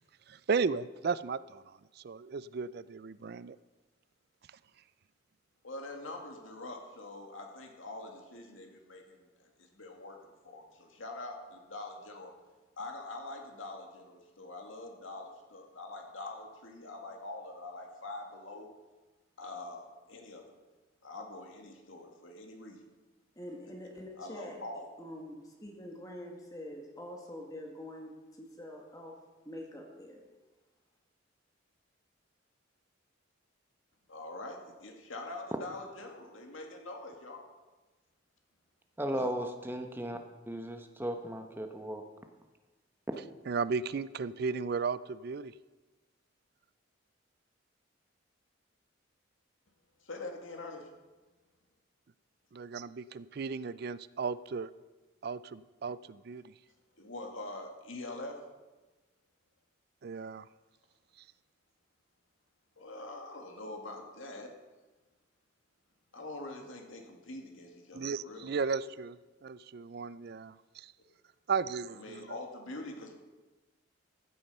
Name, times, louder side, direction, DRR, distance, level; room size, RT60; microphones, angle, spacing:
voice 1, 0.3-3.6 43.5-45.5 52.5-54.7 55.2-56.5 60.0-60.5 61.2-61.3 67.9-70.9 71.5-72.4, right 5 dB, 50° right, 17 dB, 0.4 m, -35 dB
voice 2, 5.6-12.3 12.8-18.7 19.4-20.5 21.0-22.8 24.2-24.9 34.1-37.4 39.1-39.3 50.0-50.9 57.0-58.4 62.8-64.5 66.1-68.5 71.9-73.1, left 2 dB, 80° left, 2 dB, 2.1 m, -44 dB
voice 3, 23.3-24.6 25.0-29.1 29.4-30.2, left 1 dB, 15° left, 0 dB, 1.7 m, -45 dB
voice 4, 39.0-40.2 40.5-42.0, right 1 dB, 10° right, 5 dB, 1.0 m, -36 dB
15.0 x 8.5 x 5.6 m, 1.2 s
head